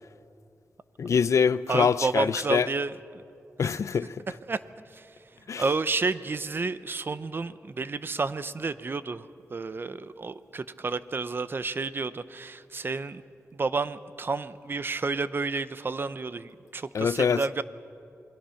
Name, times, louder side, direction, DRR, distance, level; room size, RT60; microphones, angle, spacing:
voice 1, 1.0-2.7 3.6-4.1 5.5-5.6 16.9-17.4, left 6 dB, 70° left, 0.5 m, -24 dB
voice 2, 1.7-3.2 3.6-3.8 4.3-4.6 4.9-5.1 5.6-13.2 13.5-17.6, right 4 dB, 45° right, 0.7 m, -31 dB
28.5 x 21.5 x 5.8 m
wide cardioid pair, 95°, 5 cm